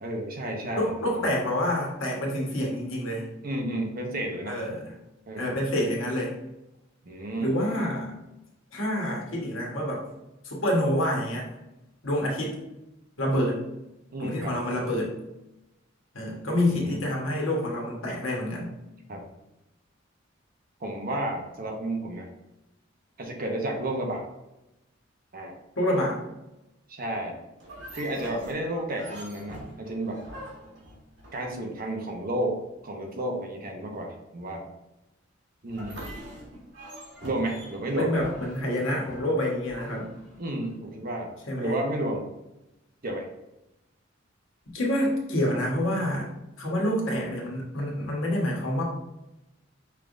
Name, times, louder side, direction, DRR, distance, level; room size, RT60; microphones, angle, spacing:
voice 1, 0.0-1.2 3.4-4.6 5.3-5.6 7.0-7.6 14.1-14.5 16.7-17.0 19.1-19.2 20.8-22.3 23.2-24.2 25.3-25.6 26.9-27.4 27.9-30.2 31.3-32.6 32.8-34.7 35.6-36.1 37.2-38.1 40.4-41.3 41.6-42.2 43.0-43.3, right 1 dB, 50° right, 1 dB, 0.9 m, -31 dB
voice 2, 0.8-3.3 4.5-4.9 5.4-6.4 7.4-8.1 8.7-10.0 10.4-11.5 12.0-12.5 13.2-13.6 14.2-15.1 16.1-18.7 25.8-26.2 38.0-40.1 41.5-41.8 44.7-46.3 46.6-48.8, left 1 dB, 85° left, -2 dB, 1.3 m, -27 dB
sound 1, 27.6-31.9 35.7-40.8, right 1 dB, 65° right, 1.6 m, -44 dB
5.6 x 3.4 x 2.6 m, 0.93 s
head